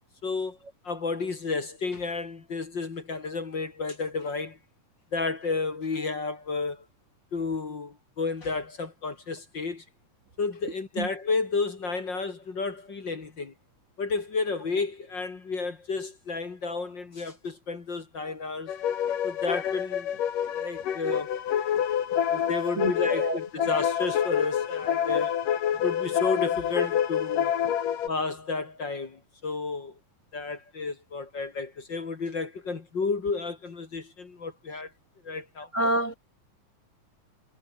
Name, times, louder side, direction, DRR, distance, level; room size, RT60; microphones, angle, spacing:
voice 1, 0.2-0.6 0.8-4.6 5.1-6.8 7.3-9.8 10.4-13.5 14.0-18.7 19.2-20.1 20.6-21.3 22.2-25.4 25.8-27.5 28.1-29.9 30.3-34.9 35.2-35.7, left 4 dB, 35° left, 2.4 m, -32 dB
sound 1, 18.7-28.1, left 9 dB, 75° left, 3.8 m, -27 dB
voice 2, 22.7-23.4 35.7-36.1, right 2 dB, 30° right, 1.5 m, -27 dB
omnidirectional pair, 3.8 m